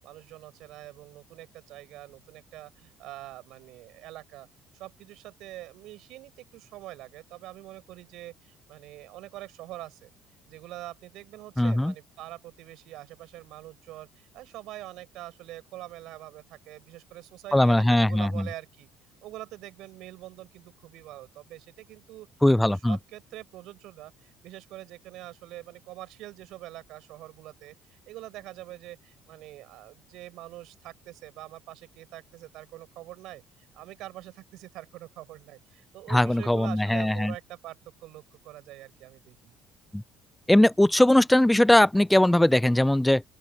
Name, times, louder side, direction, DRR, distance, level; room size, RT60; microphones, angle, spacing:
voice 1, 0.0-4.5 4.7-10.1 10.5-18.9 19.2-22.3 22.6-33.4 33.7-39.5, right 16 dB, 55° right, 6.9 m, -44 dB
voice 2, 11.6-11.9 17.5-18.5 22.4-23.0 36.1-37.3 39.9-40.0 40.5-43.2, left 1 dB, 5° left, 0.3 m, -20 dB
open air
figure-of-eight pair, 55°, 0 cm